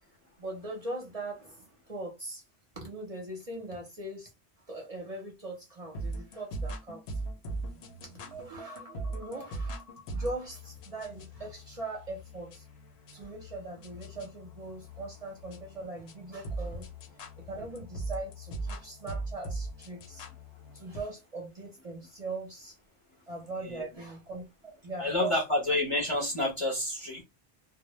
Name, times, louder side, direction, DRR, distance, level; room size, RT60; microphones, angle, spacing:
voice 1, 0.4-2.4 2.8-4.3 4.7-7.2 8.0-12.6 13.1-16.9 17.4-20.2 20.7-22.8 23.3-25.4, right 2 dB, 40° right, 0.6 m, -40 dB
sound 1, 5.9-21.0, right 2 dB, 75° left, 0.8 m, -40 dB
voice 2, 25.0-27.2, left 1 dB, 35° left, 0.6 m, -29 dB
2.1 x 2.0 x 2.9 m
omnidirectional pair, 1.1 m